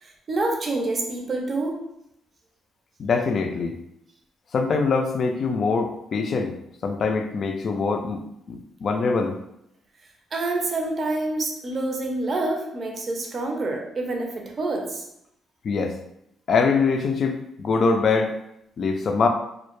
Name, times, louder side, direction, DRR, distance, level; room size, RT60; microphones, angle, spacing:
voice 1, 0.0-1.8 10.3-15.0, right 2 dB, 40° right, 1 dB, 0.5 m, -27 dB
voice 2, 3.0-3.8 4.5-6.5 6.8-9.4 15.6-16.0 16.5-18.3 18.8-19.3, left 4 dB, 55° left, 4 dB, 0.3 m, -23 dB
2.1 x 2.1 x 2.9 m, 0.79 s
cardioid pair, 95°, 0 cm